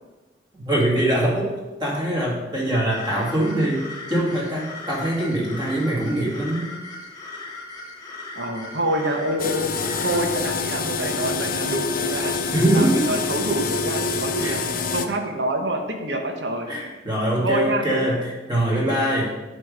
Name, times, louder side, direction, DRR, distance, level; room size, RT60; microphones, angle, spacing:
voice 1, 0.6-1.5 1.8-6.7 12.5-13.1 14.4-14.6 16.7-19.3, right 1 dB, 25° right, -4 dB, 2.3 m, -23 dB
sound 1, 2.9-10.2, left 2 dB, 25° left, 1.3 m, -38 dB
voice 2, 8.4-9.7 10.0-12.3 12.7-14.6 14.9-16.7 17.4-18.1 18.5-19.3, right 1 dB, 85° right, 3 dB, 1.2 m, -27 dB
sound 2, 9.4-15.1, left 4 dB, 55° left, 0.6 m, -26 dB
9.7 x 3.4 x 6.7 m, 1.2 s
head